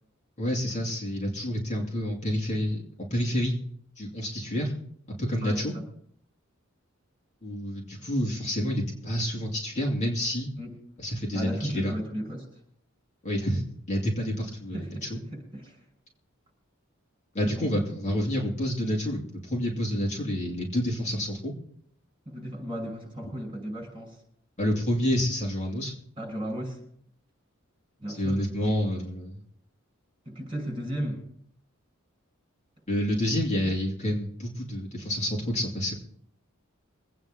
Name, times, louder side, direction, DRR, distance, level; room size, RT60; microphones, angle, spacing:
voice 1, 0.4-2.8 3.1-3.5 4.0-4.7 5.2-5.7 7.4-10.5 11.0-11.9 13.2-13.6 13.9-15.2 17.3-21.5 24.6-25.9 28.1-29.4 32.9-35.9, equal, 35° left, -2 dB, 2.8 m, -28 dB
voice 2, 5.4-5.8 10.6-10.7 11.3-12.4 14.7-15.8 17.4-17.7 22.3-24.2 26.2-26.8 28.0-28.4 30.2-31.2, equal, 25° right, 1 dB, 6.0 m, -35 dB
24.5 x 9.1 x 3.8 m, 0.66 s
head